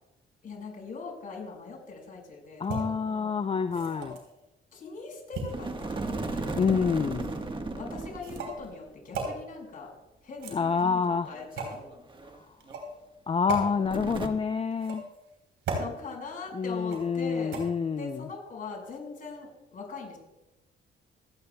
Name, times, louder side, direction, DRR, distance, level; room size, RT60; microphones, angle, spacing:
voice 1, 0.4-3.4 3.8-4.1 4.7-6.5 7.7-9.9 10.2-11.8 15.8-17.7 17.9-20.2, left 4 dB, 45° left, -1 dB, 5.0 m, -41 dB
voice 2, 2.6-4.2 6.6-7.3 10.5-11.3 13.3-15.0 16.5-18.3, left 5 dB, 30° left, 10 dB, 0.4 m, -27 dB
sound 1, 2.6-2.8 3.6-4.3 5.3-6.2 7.2-7.4 8.2-8.6 9.1-9.3 10.3-10.9 11.6-11.8 12.6-12.9 13.5-13.6 14.7-15.2 15.6-15.9 16.9-17.2 17.5-17.6, right 3 dB, 80° right, 3.7 m, -35 dB
sound 2, 5.5-8.7 9.0-9.1 10.4-12.4 12.7-12.8 13.9-14.3, right 2 dB, 25° right, 1.3 m, -36 dB
26.5 x 9.3 x 2.2 m, 0.95 s
cardioid pair, 90°, 20 cm